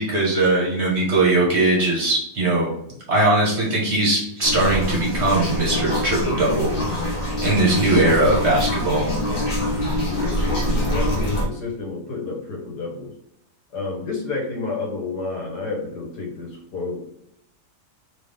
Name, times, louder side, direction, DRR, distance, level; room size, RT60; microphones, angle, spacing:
voice 1, 0.0-2.7 3.1-7.0 7.4-9.0, right 2 dB, 40° right, -4 dB, 1.5 m, -20 dB
sound 1, 4.4-11.4, left 1 dB, 35° left, 1.4 m, -24 dB
voice 2, 10.0-13.1 13.7-17.1, left 3 dB, 75° left, 0 dB, 1.8 m, -30 dB
3.6 x 3.6 x 3.4 m, 0.74 s
omnidirectional pair, 1.8 m